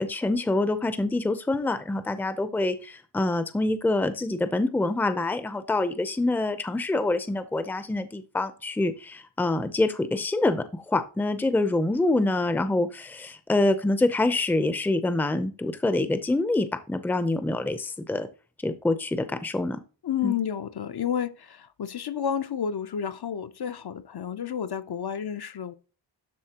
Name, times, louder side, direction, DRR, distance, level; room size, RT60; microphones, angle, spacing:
voice 1, 0.0-18.3 18.6-19.8 20.2-20.3, left 2 dB, 5° left, 0.5 m, -26 dB
voice 2, 20.0-25.7, left 8 dB, 55° left, 0.6 m, -30 dB
12.5 x 4.1 x 2.9 m
wide cardioid pair, 155°, 46 cm